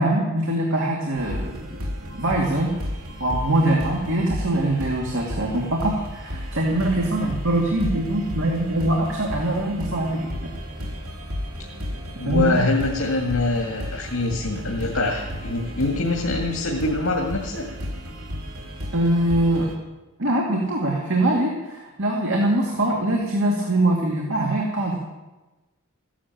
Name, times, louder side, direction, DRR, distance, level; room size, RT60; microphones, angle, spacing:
voice 1, 0.0-1.5 2.2-2.7 3.2-10.5 12.2-12.6 18.9-19.8 20.2-25.0, right 1 dB, 65° right, -1 dB, 2.4 m, -23 dB
sound 1, 1.1-19.7, equal, 85° right, 3.4 m, -33 dB
voice 2, 12.2-17.7, left 2 dB, 85° left, -1 dB, 2.1 m, -24 dB
15.0 x 11.5 x 7.4 m, 1.1 s
head